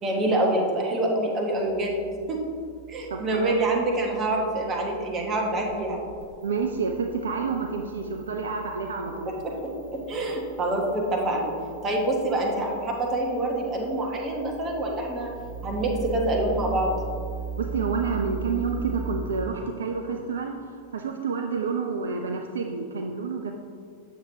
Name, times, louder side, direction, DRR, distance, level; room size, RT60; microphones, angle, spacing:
voice 1, 0.0-2.0 2.3-2.4 2.9-6.0 9.4-11.5 11.8-15.3 15.6-16.9, right 1 dB, 30° right, 0 dB, 1.3 m, -26 dB
tv contact, 1.5-19.4, right 5 dB, 80° left, 1.2 m, -39 dB
voice 2, 3.1-3.5 6.4-9.3 17.6-23.5, right 5 dB, 65° right, 4 dB, 0.4 m, -29 dB
7.4 x 7.1 x 2.8 m, 2.2 s
figure-of-eight pair, 90°, 0 cm